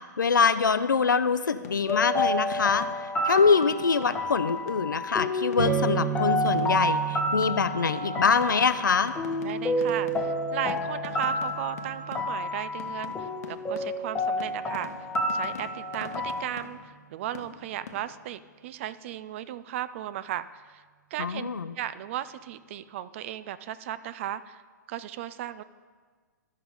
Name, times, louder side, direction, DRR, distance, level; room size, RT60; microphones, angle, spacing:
voice 1, 0.2-2.9 3.3-9.1 21.2-21.7, left 5 dB, 80° left, 13 dB, 0.5 m, -24 dB
sound 1, 1.4-5.1 5.5-5.9 6.5-12.5 12.8-17.1 17.3-18.3, left 7 dB, 50° left, 0.8 m, -45 dB
sound 2, 1.9-16.4, left 1 dB, 10° left, 0.7 m, -30 dB
sound 3, 5.6-13.2, right 9 dB, 70° right, 1.1 m, -35 dB
voice 2, 9.4-14.9 15.3-20.8 21.1-21.5 21.8-24.6 24.9-25.6, right 12 dB, 40° right, 15 dB, 0.4 m, -36 dB
13.0 x 5.5 x 4.9 m, 1.5 s
figure-of-eight pair, 120°, 10 cm